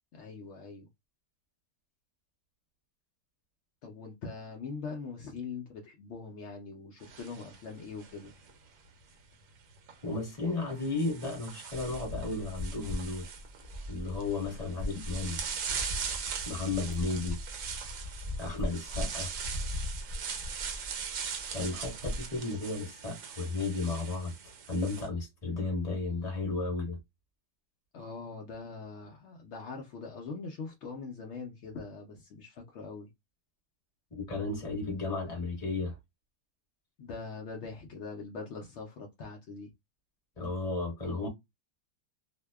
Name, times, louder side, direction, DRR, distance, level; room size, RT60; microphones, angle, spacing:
voice 1, 0.1-0.9 3.8-8.3 27.9-33.1 37.0-39.7, left 4 dB, 80° left, 0.6 m, -42 dB
sound 1, 7.0-8.5 9.8-9.9 10.7-25.1, right 7 dB, 75° right, 1.1 m, -40 dB
voice 2, 10.0-13.3 13.9-15.4 16.4-17.4 18.4-19.3 21.5-24.3 24.7-27.0 34.1-36.0 40.4-41.3, left 3 dB, 30° left, 1.0 m, -34 dB
sound 2, 11.7-22.4, left 1 dB, 90° right, 0.3 m, -39 dB
2.6 x 2.1 x 2.2 m
omnidirectional pair, 1.7 m